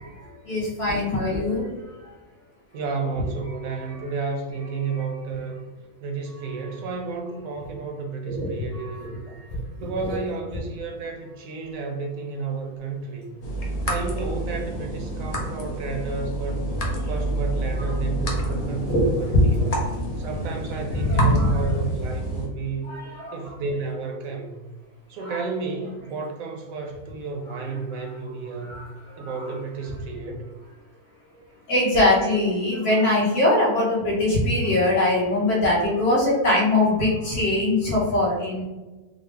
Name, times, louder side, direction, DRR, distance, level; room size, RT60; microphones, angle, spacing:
voice 1, 0.1-1.7 2.0-2.1 3.8-4.1 4.9-5.1 8.2-9.6 10.0-10.2 17.8-17.9 18.4-19.1 19.3-19.7 20.9-21.7 22.8-23.5 25.2-25.4 27.5-27.6 28.7-29.4 31.3-31.4 31.7-38.6, left 1 dB, 60° left, -5 dB, 1.5 m, -23 dB
voice 2, 2.7-5.6 6.0-9.4 9.8-13.4 13.9-16.6 17.1-19.7 20.2-23.0 23.3-24.6 25.1-28.9 29.2-30.5, right 4 dB, 75° right, 2 dB, 1.0 m, -32 dB
sound 1, 13.4-22.5, right 1 dB, 80° left, 0.3 m, -29 dB
3.8 x 2.0 x 3.2 m, 1.1 s
omnidirectional pair, 1.5 m